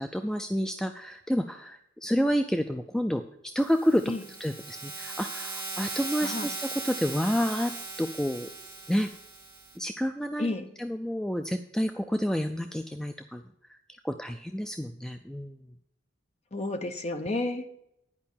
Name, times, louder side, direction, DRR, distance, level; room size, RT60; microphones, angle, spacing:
voice 1, 0.0-4.0 4.4-7.7 8.0-8.5 8.9-9.1 9.8-13.4 13.7-13.8 14.0-15.6, equal, 5° left, 7 dB, 0.3 m, -29 dB
sound 1, 3.6-9.8, right 3 dB, 15° right, 1.6 m, -38 dB
voice 2, 6.2-6.6 10.4-10.7 16.5-17.8, left 2 dB, 35° left, 7 dB, 0.8 m, -31 dB
10.5 x 5.2 x 7.2 m, 0.78 s
head